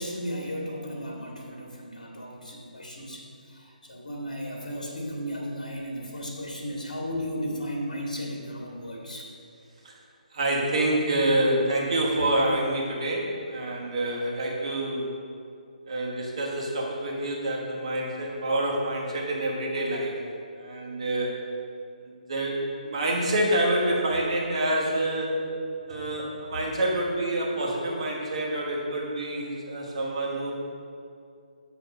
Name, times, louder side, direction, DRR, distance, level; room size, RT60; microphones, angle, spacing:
voice 1, 0.0-9.3, equal, 60° left, -1 dB, 1.5 m, -35 dB
voice 2, 10.3-15.1 15.9-20.2 20.6-21.3 22.0-25.4 25.9-30.5, right 1 dB, 45° right, -3 dB, 1.3 m, -27 dB
8.0 x 3.1 x 5.8 m, 2.4 s
figure-of-eight pair, 140°, 5 cm